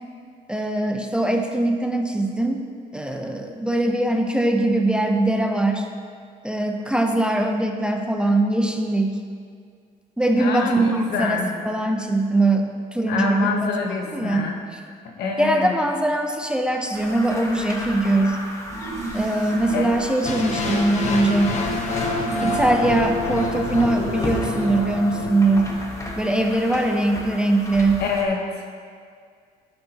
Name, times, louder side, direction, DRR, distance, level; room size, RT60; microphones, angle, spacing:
voice 1, 0.5-2.6 2.9-5.9 6.4-9.2 10.2-10.9 11.2-13.7 14.1-14.8 15.4-18.4 19.1-21.6 22.4-25.7 26.2-28.0, right 2 dB, 5° right, 3 dB, 0.5 m, -22 dB
voice 2, 10.4-11.5 13.1-14.6 15.2-15.7 19.7-19.9 28.0-28.4, left 5 dB, 75° left, 1 dB, 1.1 m, -25 dB
sound 1, 16.9-28.3, left 1 dB, 20° left, 1.2 m, -35 dB
sound 2, 18.7-24.4, right 3 dB, 45° right, 1.3 m, -33 dB
sound 3, 20.2-26.3, left 2 dB, 45° left, 1.1 m, -27 dB
11.0 x 7.3 x 2.9 m, 2.1 s
cardioid pair, 110°, 17 cm